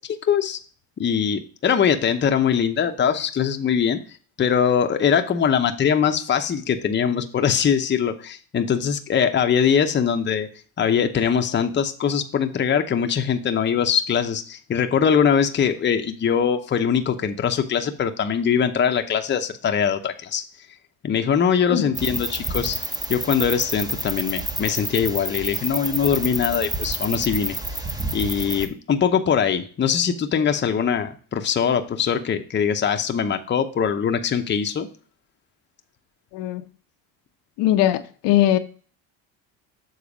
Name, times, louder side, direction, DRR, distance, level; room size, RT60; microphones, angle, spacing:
voice 1, 0.1-0.6 1.0-4.0 4.4-10.5 10.8-20.4 21.0-22.8 23.1-27.5 28.1-34.9, left 7 dB, 25° left, 0.7 m, -22 dB
sound 1, 21.9-28.7, right 1 dB, 10° right, 0.8 m, -29 dB
voice 2, 37.6-38.6, left 13 dB, 70° left, 0.7 m, -20 dB
7.0 x 3.9 x 5.0 m
supercardioid pair, 95°, 45 cm